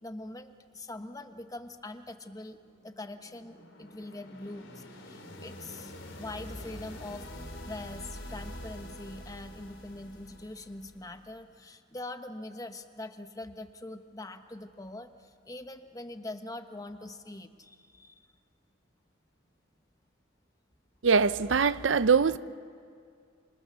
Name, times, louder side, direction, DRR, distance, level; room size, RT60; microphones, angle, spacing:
voice 1, 0.0-2.6 2.8-7.3 7.7-18.2, left 2 dB, 20° left, 1.1 m, -43 dB
sound 1, 2.5-11.4, left 1 dB, 85° left, 3.4 m, -46 dB
voice 2, 21.0-22.4, right 5 dB, 75° right, 0.6 m, -23 dB
26.5 x 25.5 x 7.0 m
head